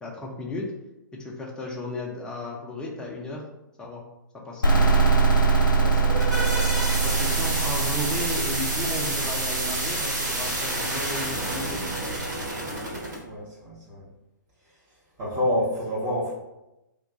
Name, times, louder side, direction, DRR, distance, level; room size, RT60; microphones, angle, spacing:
voice 1, 0.0-0.7 1.2-3.4 3.8-4.0 4.4-4.7 7.0-11.9, left 2 dB, 5° left, -2 dB, 0.5 m, -34 dB
sound 1, 4.6-12.2, right 4 dB, 80° left, 0.6 m, -24 dB
voice 2, 5.7-6.3 13.2-14.0 15.2-16.3, left 1 dB, 25° right, -6 dB, 0.9 m, -28 dB
sound 2, 5.9-13.2, right 1 dB, 60° right, 1.2 m, -29 dB
2.5 x 2.2 x 3.9 m, 0.94 s
figure-of-eight pair, 120°, 11 cm